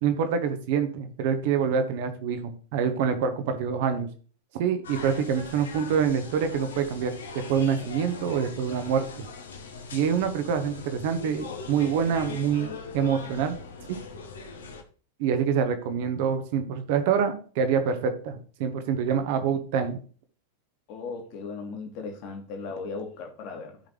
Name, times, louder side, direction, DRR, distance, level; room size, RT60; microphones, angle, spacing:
voice 1, 0.0-4.1 4.6-7.1 7.5-9.3 9.9-13.6 13.9-14.0 15.2-20.0, right 7 dB, 50° right, 1.3 m, -26 dB
sound 1, 4.8-14.8, left 4 dB, 65° left, 1.3 m, -41 dB
voice 2, 20.9-23.8, left 4 dB, 45° left, 2.1 m, -37 dB
14.5 x 5.1 x 3.2 m
figure-of-eight pair, 90°, 0 cm